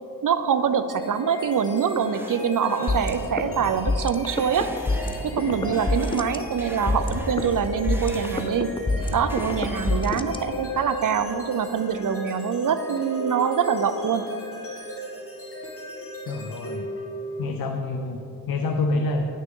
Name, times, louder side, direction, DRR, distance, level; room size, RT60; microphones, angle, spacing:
voice 1, 0.2-4.7 5.2-8.9 9.1-14.4, right 7 dB, 60° right, 11 dB, 0.6 m, -24 dB
sound 1, 0.9-17.5, equal, 35° left, 1.6 m, -37 dB
sound 2, 1.6-8.6 9.0-10.4, right 1 dB, 5° right, 0.8 m, -43 dB
sound 3, 2.9-10.9, left 2 dB, 15° left, 0.4 m, -28 dB
voice 2, 16.3-16.9 17.4-18.2 18.5-19.3, left 3 dB, 70° left, 5 dB, 0.6 m, -27 dB
10.0 x 6.4 x 3.7 m, 3.0 s
cardioid pair, 60°, 37 cm